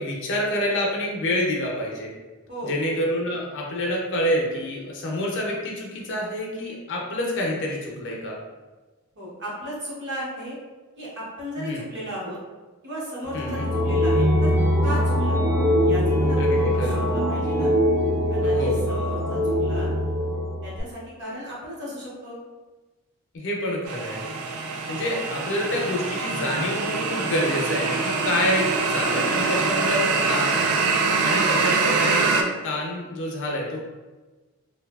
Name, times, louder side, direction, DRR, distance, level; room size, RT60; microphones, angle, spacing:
voice 1, 0.0-2.1 2.6-8.4 11.6-11.8 13.3-13.7 16.4-17.0 18.4-18.9 23.3-24.2 24.9-30.8 31.2-33.8, left 1 dB, 55° left, -1 dB, 0.5 m, -27 dB
voice 2, 9.2-10.6 11.0-12.4 12.8-14.5 14.8-15.4 15.8-17.7 18.3-19.9 20.6-22.4, equal, 50° right, -6 dB, 0.9 m, -35 dB
sound 1, 13.3-20.8, equal, 10° right, 0.4 m, -22 dB
sound 2, 23.9-32.4, right 4 dB, 80° right, 0.3 m, -24 dB
2.8 x 2.3 x 2.3 m, 1.2 s
head